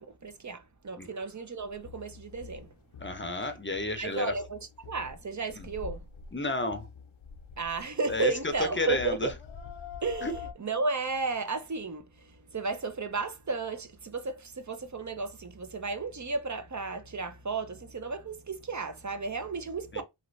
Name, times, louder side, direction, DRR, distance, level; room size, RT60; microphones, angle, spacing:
voice 1, 0.0-2.7 4.0-6.0 7.6-9.3 10.0-20.0, right 4 dB, 40° right, 0.5 m, -33 dB
sound 1, 1.6-10.5, left 6 dB, 80° left, 0.6 m, -46 dB
voice 2, 3.0-4.3 5.6-5.7 6.3-6.9 8.1-8.3 8.8-9.3 10.2-10.3 19.9-20.0, left 2 dB, 25° left, 0.6 m, -31 dB
2.9 x 2.5 x 3.1 m
wide cardioid pair, 50°, 47 cm